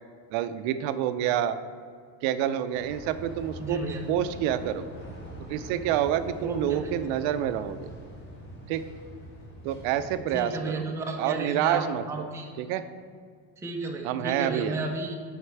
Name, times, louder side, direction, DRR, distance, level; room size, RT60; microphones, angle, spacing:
voice 1, 0.3-1.6 2.2-3.8 4.1-4.9 5.5-7.9 8.7-8.8 9.6-10.9 11.2-12.3 12.6-12.9 14.0-14.8, right 10 dB, 80° right, 12 dB, 0.6 m, -28 dB
sound 1, 2.7-10.2, equal, 25° left, 1.4 m, -43 dB
voice 2, 3.6-4.0 6.4-6.9 10.3-12.5 13.6-15.2, right 2 dB, 5° right, 1 dB, 0.4 m, -33 dB
6.5 x 5.1 x 4.6 m, 2.1 s
cardioid pair, 145°, 45 cm